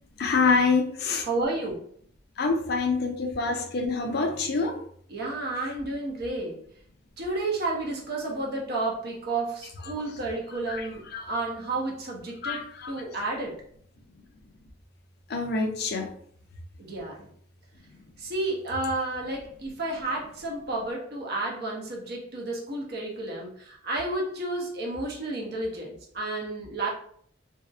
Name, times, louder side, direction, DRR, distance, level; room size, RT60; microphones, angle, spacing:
voice 1, 0.2-1.3 2.4-4.7 9.8-9.9 10.7-10.9 11.1-11.3 12.4-12.9 15.3-16.1, left 4 dB, 60° left, 4 dB, 0.4 m, -26 dB
voice 2, 1.2-1.9 5.1-6.6 7.2-13.6 16.8-17.3 18.2-26.9, right 2 dB, 60° right, -1 dB, 0.7 m, -31 dB
2.6 x 2.0 x 2.3 m, 0.63 s
head